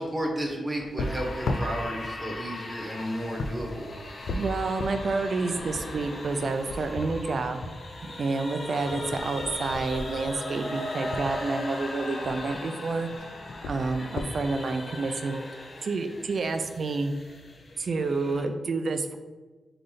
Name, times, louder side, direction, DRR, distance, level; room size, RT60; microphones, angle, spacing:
voice 1, 0.0-3.9, right 1 dB, 20° right, 0 dB, 1.1 m, -32 dB
sound 1, 0.8-11.3 12.2-12.6 12.9-14.4, left 2 dB, 80° left, 0.4 m, -37 dB
sound 2, 1.0-18.4, left 1 dB, 50° left, 0.8 m, -39 dB
voice 2, 4.3-7.6 8.0-13.1 13.7-15.4 15.8-17.1 17.8-19.2, right 3 dB, 60° right, 8 dB, 0.4 m, -29 dB
3.8 x 3.3 x 3.8 m, 1.3 s
cardioid pair, 75°, 0 cm